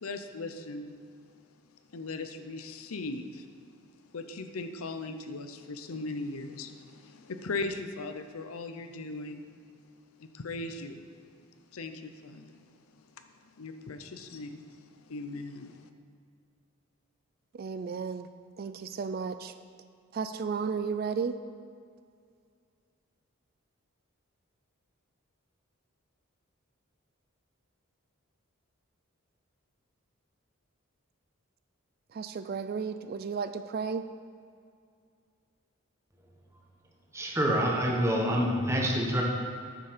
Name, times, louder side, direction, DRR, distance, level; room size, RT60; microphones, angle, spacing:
voice 1, 0.0-1.0 1.9-3.5 4.1-9.4 10.2-11.0 11.7-12.6 13.6-15.9, left 3 dB, 90° left, 8 dB, 0.7 m, -38 dB
voice 2, 17.5-18.3 18.6-19.5 20.1-21.4 32.1-34.0, right 5 dB, 45° right, 10 dB, 0.3 m, -33 dB
voice 3, 37.1-39.2, equal, 15° right, -1 dB, 1.2 m, -26 dB
9.0 x 7.0 x 5.0 m, 2.2 s
head